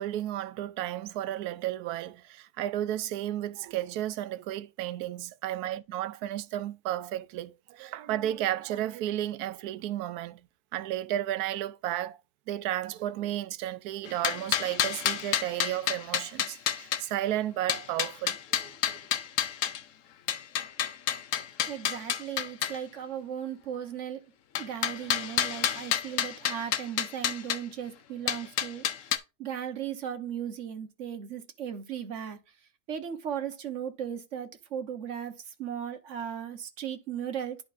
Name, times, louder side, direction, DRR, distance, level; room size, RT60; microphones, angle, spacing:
voice 1, 0.0-10.4 10.7-12.2 12.5-18.7, right 13 dB, 90° right, 1.1 m, -33 dB
sound 1, 14.1-17.0 17.7-19.8 20.3-22.8 24.6-27.6 28.3-29.2, left 10 dB, 65° left, 1.0 m, -29 dB
voice 2, 21.7-24.2 24.6-29.0 29.4-32.4 32.9-37.6, right 9 dB, 55° right, 1.3 m, -37 dB
11.0 x 4.6 x 2.5 m
omnidirectional pair, 1.6 m